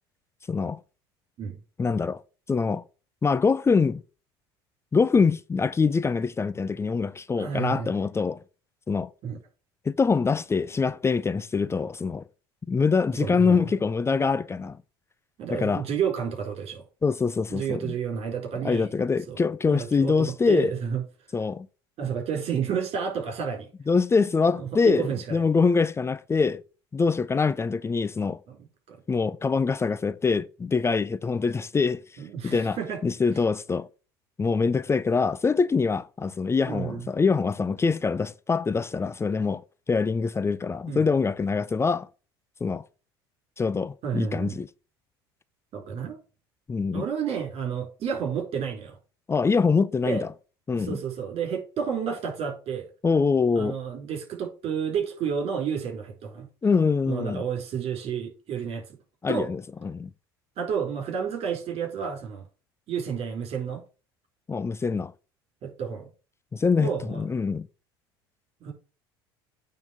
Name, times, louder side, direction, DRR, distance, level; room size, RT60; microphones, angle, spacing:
voice 1, 0.5-0.8 1.8-2.2 2.5-2.8 3.2-4.0 4.9-8.4 8.9-9.1 9.9-12.2 12.7-14.8 15.5-15.8 17.0-17.9 18.6-20.7 21.3-21.7 23.9-26.6 26.9-28.4 29.1-32.0 32.4-32.8 33.0-33.9 34.4-39.6 39.9-42.1 42.6-42.8 43.6-44.7 46.7-47.0 49.3-50.3 50.7-51.0 53.0-53.7 56.6-57.4 59.2-60.1 64.5-65.1 66.5-66.9 67.2-67.7, left 5 dB, 20° left, 0.6 m, -24 dB
voice 2, 7.4-7.9 9.2-9.4 13.2-13.6 15.4-16.8 17.5-18.9 19.3-19.4 19.7-21.0 22.0-23.7 24.5-25.4 28.5-29.0 32.2-33.0 36.6-37.1 40.9-41.1 44.0-44.5 45.7-46.2 46.9-49.0 50.0-50.2 50.8-52.9 53.5-56.5 57.1-58.8 59.3-59.5 60.6-62.5 62.9-63.8 65.6-66.1 66.8-67.2 68.6-68.7, right 7 dB, 50° right, 4.8 m, -31 dB
8.9 x 4.0 x 7.0 m
hypercardioid pair, 75°, 13 cm